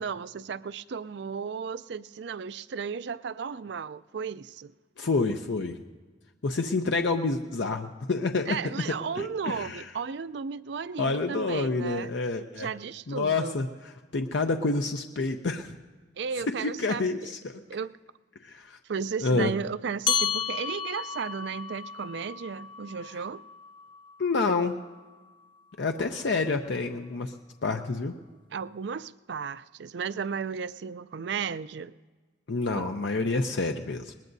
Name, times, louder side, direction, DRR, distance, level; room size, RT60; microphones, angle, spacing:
voice 1, 0.0-4.7 8.5-12.1 12.5-13.5 16.2-17.3 17.7-17.9 18.9-23.4 28.5-31.9 32.8-32.9, right 6 dB, 60° right, 0.4 m, -34 dB
voice 2, 5.0-5.8 6.4-8.7 9.2-9.9 11.0-12.7 13.1-13.7 14.1-15.7 16.6-17.6 18.4-18.8 19.2-19.5 24.2-24.8 25.8-27.3 27.6-28.1 32.5-34.1, left 3 dB, 65° left, 0.6 m, -28 dB
sound 1, 20.1-24.9, left 7 dB, 25° left, 0.4 m, -33 dB
21.0 x 19.5 x 2.7 m
head